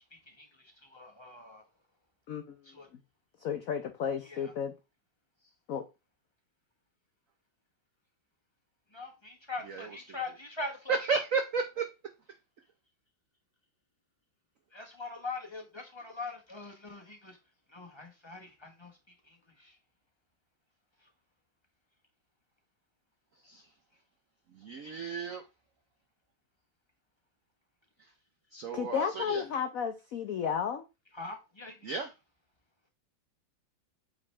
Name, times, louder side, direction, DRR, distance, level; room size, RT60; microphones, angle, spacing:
voice 1, 0.1-1.6 2.6-2.9 4.2-4.5 8.9-11.0 14.7-17.4 17.7-19.8 21.0-21.1 24.8-24.9 31.1-31.9, left 3 dB, 20° left, 0.8 m, -43 dB
voice 2, 3.4-4.7 5.7-5.8 28.7-30.9, left 7 dB, 80° left, 0.7 m, -33 dB
voice 3, 10.9-11.9 23.4-23.7 24.5-25.4 28.0-28.1 28.5-29.4 31.8-32.1, right 5 dB, 70° right, 0.7 m, -33 dB
8.5 x 3.9 x 3.2 m
omnidirectional pair, 2.3 m